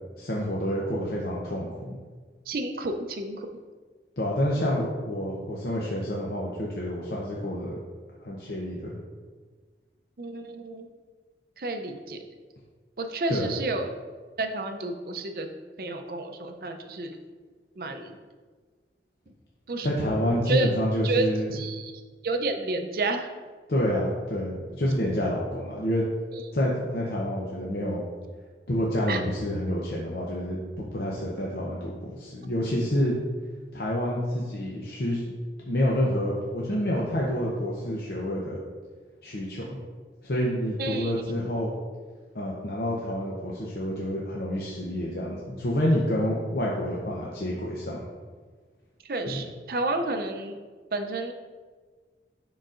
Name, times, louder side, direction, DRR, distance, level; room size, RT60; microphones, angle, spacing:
voice 1, 0.2-2.0 4.2-7.7 8.2-9.0 13.3-13.5 19.8-21.5 23.7-26.1 26.5-28.0 28.7-33.1 33.7-35.2 35.7-38.6 39.2-39.6 40.2-41.7 42.3-48.0 49.3-49.4, equal, 60° left, -4 dB, 0.7 m, -28 dB
voice 2, 2.5-3.5 10.2-10.9 11.6-12.2 13.0-13.9 14.4-15.5 15.8-17.2 17.8-18.2 19.7-20.7 21.0-21.3 21.5-21.9 22.2-23.3 26.3-26.4 29.1-29.2 40.8-41.1 49.1-50.6 50.9-51.3, right 2 dB, 55° right, 6 dB, 0.5 m, -30 dB
10.5 x 4.0 x 2.5 m, 1.5 s
head